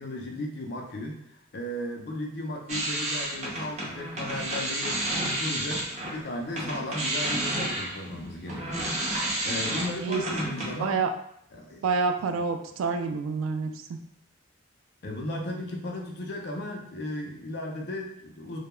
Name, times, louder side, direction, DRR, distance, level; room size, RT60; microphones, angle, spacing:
voice 1, 0.0-9.0 9.4-11.1 11.5-11.8 15.0-18.6, left 1 dB, 55° left, 1 dB, 0.5 m, -35 dB
sound 1, 2.7-6.2 6.5-10.8, right 1 dB, 35° right, 0.5 m, -31 dB
voice 2, 9.8-10.2 10.8-11.1 11.8-14.0, right 4 dB, 90° right, 6 dB, 0.3 m, -28 dB
2.2 x 2.2 x 3.0 m, 0.71 s
head